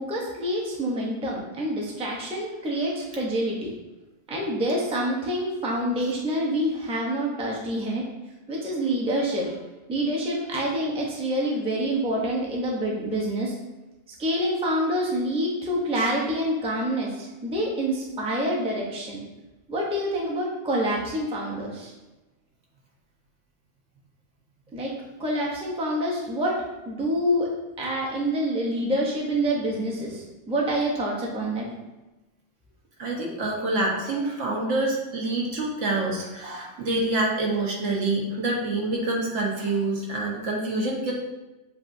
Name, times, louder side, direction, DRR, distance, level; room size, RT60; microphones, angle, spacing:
voice 1, 0.0-3.7 4.3-8.0 8.5-9.6 9.9-13.5 14.2-19.2 19.7-21.9 24.7-24.9 25.2-26.6 26.9-27.5 27.8-31.7, right 1 dB, 5° right, -3 dB, 0.5 m, -27 dB
voice 2, 33.0-41.1, right 2 dB, 75° right, -2 dB, 1.3 m, -26 dB
7.4 x 2.6 x 2.6 m, 1.1 s
omnidirectional pair, 1.3 m